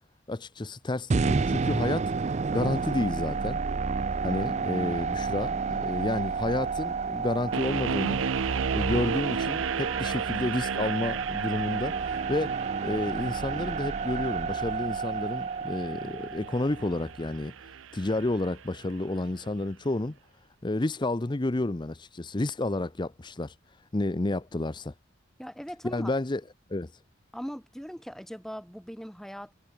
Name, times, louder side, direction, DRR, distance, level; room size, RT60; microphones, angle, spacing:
voice 1, 0.3-3.6 4.2-8.2 8.7-20.2 20.6-24.9 25.8-26.4 26.7-27.0, left 2 dB, 25° left, 0.6 m, -30 dB
sound 1, 1.1-17.2, right 4 dB, 35° right, 0.4 m, -31 dB
sound 2, 7.5-18.6, right 6 dB, 90° right, 0.6 m, -34 dB
voice 2, 25.4-26.1 27.3-29.5, equal, ahead, 3.5 m, -40 dB
head